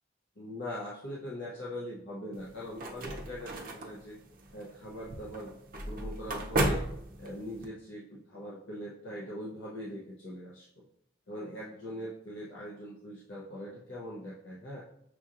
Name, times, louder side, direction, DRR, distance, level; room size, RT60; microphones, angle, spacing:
voice 1, 0.4-4.2 4.5-6.8 7.2-10.7 11.3-14.8, equal, 65° left, -6 dB, 0.7 m, -41 dB
sound 1, 2.3-7.7, right 1 dB, 45° right, 0.5 m, -35 dB
6.0 x 2.8 x 2.4 m, 0.79 s
head